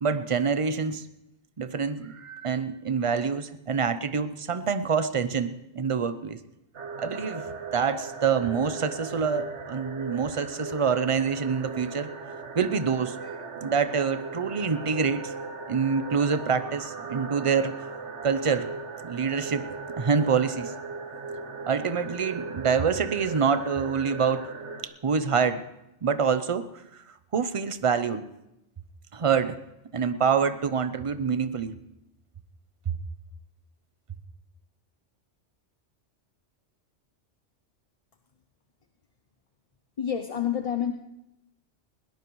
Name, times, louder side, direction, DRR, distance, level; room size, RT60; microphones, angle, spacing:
voice 1, 0.0-1.1 1.6-6.4 7.0-7.5 7.7-12.1 12.5-15.3 15.7-17.7 18.2-18.7 19.0-19.7 20.0-20.7 21.7-24.5 24.8-25.6 26.0-26.7 27.3-28.2 29.1-29.6 29.9-31.7 32.9-33.0, right 6 dB, 35° right, 12 dB, 0.6 m, -26 dB
sound 1, 6.7-24.8, right 4 dB, 70° right, 1.6 m, -38 dB
voice 2, 40.0-40.9, left 9 dB, 40° left, 6 dB, 0.6 m, -28 dB
21.0 x 18.0 x 3.1 m, 0.87 s
omnidirectional pair, 1.2 m